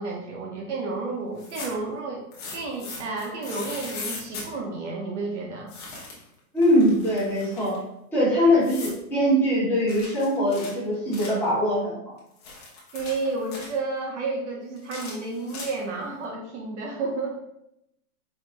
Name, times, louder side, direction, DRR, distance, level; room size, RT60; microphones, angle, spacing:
voice 1, 0.0-2.3 2.5-5.7 8.4-8.5 12.9-17.4, right 3 dB, 50° right, 0 dB, 0.9 m, -31 dB
sound 1, 1.3-1.9 2.3-4.5 5.7-6.3 6.6-7.8 8.6-9.0 9.9-11.5 12.2-13.8 14.8-16.0, left 3 dB, 25° left, 0.9 m, -39 dB
voice 2, 6.5-7.8 8.1-12.1, equal, 5° left, -11 dB, 1.5 m, -22 dB
4.9 x 3.3 x 2.6 m, 0.79 s
hypercardioid pair, 165°, 44 cm